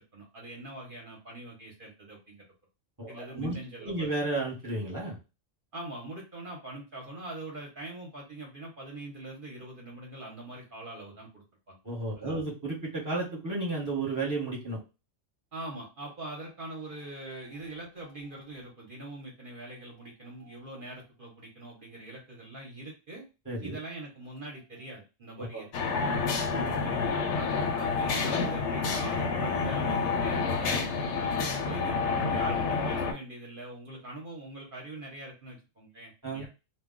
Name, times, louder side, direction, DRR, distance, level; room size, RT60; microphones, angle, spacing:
voice 1, 0.0-2.4 3.1-4.1 5.7-11.8 12.2-12.4 15.5-23.2 23.6-26.4 26.8-30.8 31.2-36.5, right 1 dB, 45° right, -2 dB, 0.9 m, -43 dB
voice 2, 3.0-5.2 11.8-14.8 23.4-23.8 25.4-25.7 26.5-26.9 36.2-36.5, right 2 dB, 15° right, -5 dB, 1.0 m, -33 dB
bullet train, 25.7-33.1, left 4 dB, 65° left, 0.8 m, -29 dB
2.3 x 2.2 x 3.6 m, 0.29 s
omnidirectional pair, 1.4 m